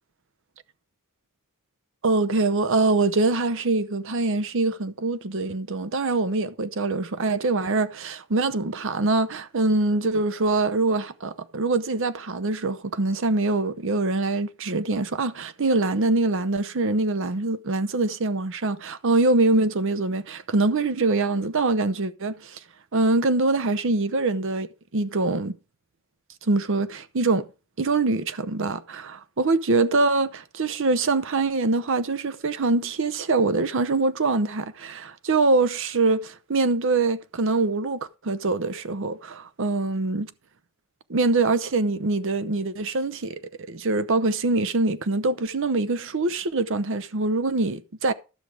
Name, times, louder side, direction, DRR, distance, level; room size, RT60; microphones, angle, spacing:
voice 1, 2.0-22.6 22.9-25.6 26.5-27.5 27.8-40.3 41.1-43.4 43.7-48.1, right 3 dB, 60° right, 0.7 m, -24 dB
12.5 x 6.4 x 4.8 m
head